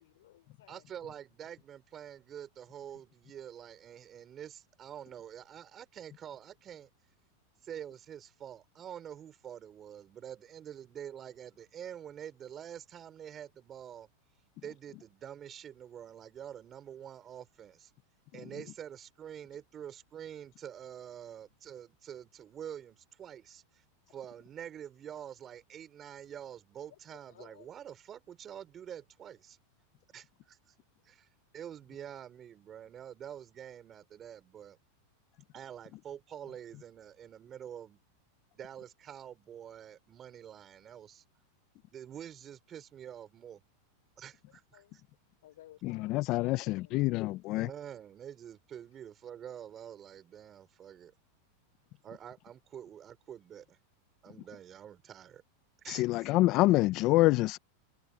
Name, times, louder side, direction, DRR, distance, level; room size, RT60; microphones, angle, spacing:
voice 1, 0.0-0.8 26.9-27.7 44.7-45.0 45.4-47.0, left 14 dB, 80° left, 4.3 m, -57 dB
voice 2, 0.7-6.9 7.6-14.1 14.6-17.9 18.3-23.8 24.1-29.6 30.1-30.7 31.0-31.3 31.5-34.8 35.5-38.0 38.5-41.2 41.9-43.6 44.2-45.0 47.5-51.1 52.0-53.8 54.2-55.4 55.8-56.3, right 9 dB, 25° right, 4.9 m, -47 dB
voice 3, 45.8-47.7 55.9-57.6, left 19 dB, 40° left, 0.4 m, -26 dB
supercardioid pair, 145°, 0 cm